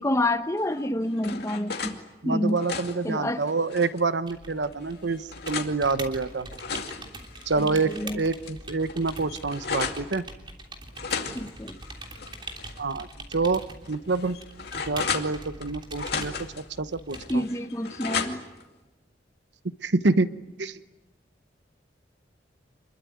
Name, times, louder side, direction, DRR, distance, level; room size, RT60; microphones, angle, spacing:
voice 1, 0.0-2.0 2.2-2.6 3.0-3.4 7.5-8.2 11.3-11.8 17.3-18.4, left 1 dB, 15° left, 9 dB, 1.1 m, -28 dB
sound 1, 0.7-2.0 2.4-4.1 4.6-5.8 6.3-8.1 8.4-8.5 8.8-10.1 10.9-12.8 13.1-13.2 13.9-15.7 16.0-16.6 17.1-18.6, left 5 dB, 60° left, 2.5 m, -35 dB
voice 2, 2.2-6.5 7.5-10.2 12.8-13.1 13.3-13.6 13.9-14.4 14.9-17.4 19.8-20.3 20.6-20.8, right 3 dB, 75° right, 13 dB, 1.0 m, -27 dB
sound 2, 4.3-17.4, right 2 dB, 25° right, 3.1 m, -43 dB
27.0 x 22.0 x 9.4 m, 1.1 s
head